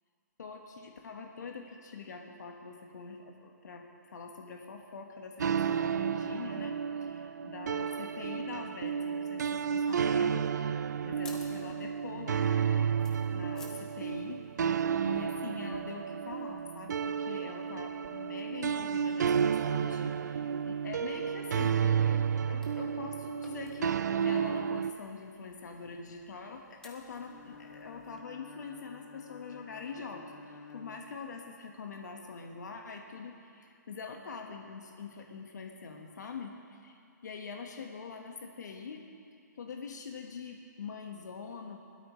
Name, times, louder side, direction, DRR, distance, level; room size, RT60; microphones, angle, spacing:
voice 1, 0.4-3.8 4.1-10.5 10.7-12.9 13.3-14.5 15.0-39.0 39.6-41.8, left 5 dB, 70° left, 2 dB, 1.4 m, -44 dB
sound 1, 5.4-24.9, right 7 dB, 65° right, 0.5 m, -31 dB
sound 2, 10.8-28.2, left 2 dB, 5° left, 0.8 m, -59 dB
Bowed string instrument, 27.1-31.7, left 4 dB, 85° left, 1.4 m, -51 dB
19.5 x 12.5 x 3.2 m, 2.4 s
hypercardioid pair, 165°, 10 cm